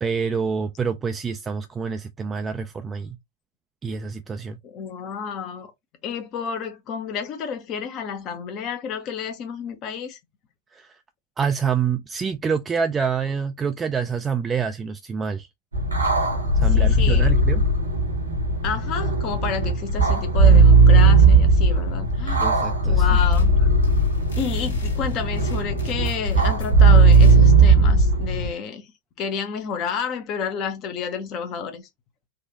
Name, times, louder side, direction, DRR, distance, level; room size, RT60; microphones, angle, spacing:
voice 1, 0.0-3.2 3.8-4.6 10.7-11.0 11.4-15.5 16.5-17.6 22.4-23.2, right 6 dB, 20° right, 0.4 m, -27 dB
voice 2, 4.6-5.7 6.0-10.2 16.7-17.3 18.6-22.4 22.8-23.7 24.4-28.9 29.2-31.9, left 6 dB, 35° left, 0.7 m, -30 dB
sound 1, 15.7-28.5, right 3 dB, 80° right, 1.2 m, -17 dB
sound 2, 23.1-23.6 23.8-26.8 27.1-27.4, left 6 dB, 75° left, 1.6 m, -33 dB
4.3 x 2.4 x 2.7 m
figure-of-eight pair, 90°, 0 cm